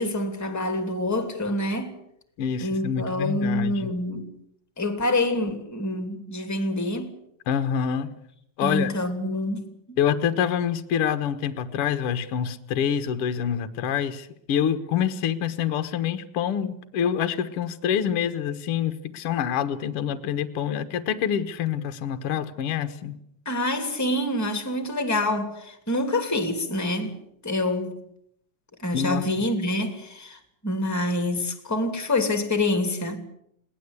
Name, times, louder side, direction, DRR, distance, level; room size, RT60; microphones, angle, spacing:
voice 1, 0.0-1.9 2.6-4.3 4.8-7.1 8.6-10.0 23.4-27.2 27.4-28.0 28.8-33.2, left 1 dB, 5° left, 2.4 m, -26 dB
voice 2, 2.4-3.9 7.5-8.1 8.6-8.9 10.0-23.2 28.9-29.5, left 8 dB, 55° left, 1.9 m, -26 dB
22.0 x 18.0 x 8.2 m
omnidirectional pair, 3.4 m